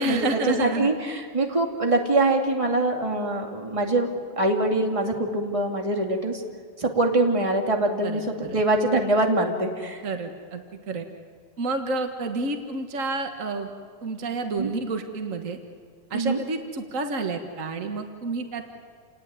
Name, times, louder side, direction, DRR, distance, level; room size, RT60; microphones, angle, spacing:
voice 1, 0.0-0.9 8.0-8.6 10.0-11.0 11.6-13.7 14.0-15.6 16.1-18.7, right 2 dB, 50° right, 5 dB, 0.9 m, -29 dB
voice 2, 0.6-6.4 6.8-10.0 14.5-14.7 16.1-16.4, right 2 dB, 10° right, 2 dB, 2.0 m, -24 dB
29.5 x 18.5 x 9.6 m, 2.1 s
omnidirectional pair, 3.7 m